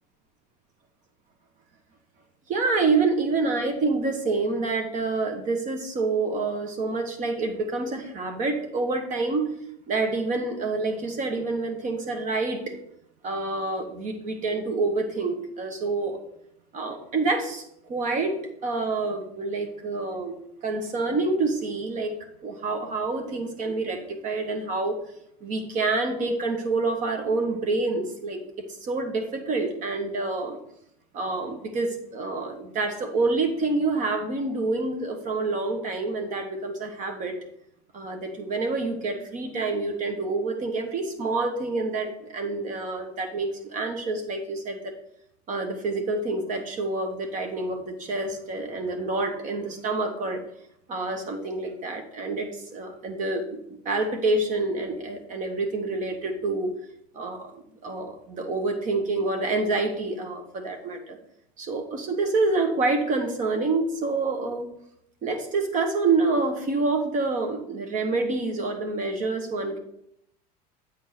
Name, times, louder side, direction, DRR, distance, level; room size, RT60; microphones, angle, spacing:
voice 1, 2.5-9.5 9.9-12.8 13.2-16.2 16.7-22.1 22.4-25.0 25.4-30.6 31.1-37.4 37.9-44.9 45.5-50.4 50.9-56.7 57.1-61.2 61.6-64.7 65.2-69.8, right 3 dB, 40° right, 5 dB, 1.2 m, -27 dB
8.4 x 3.6 x 6.5 m, 0.74 s
supercardioid pair, 125°, 20 cm